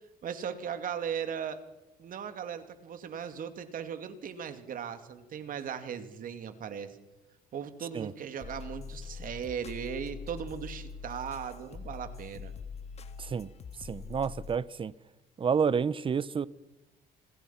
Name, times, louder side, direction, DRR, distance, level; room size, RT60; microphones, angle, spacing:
voice 1, 0.2-1.6 2.0-7.0 7.5-12.5, right 8 dB, 55° right, 2.6 m, -38 dB
sound 1, 8.4-14.6, left 5 dB, 40° left, 1.8 m, -43 dB
voice 2, 13.9-14.9 15.4-16.5, right 6 dB, 30° right, 0.9 m, -29 dB
28.0 x 22.0 x 5.9 m
cardioid pair, 110°, 17 cm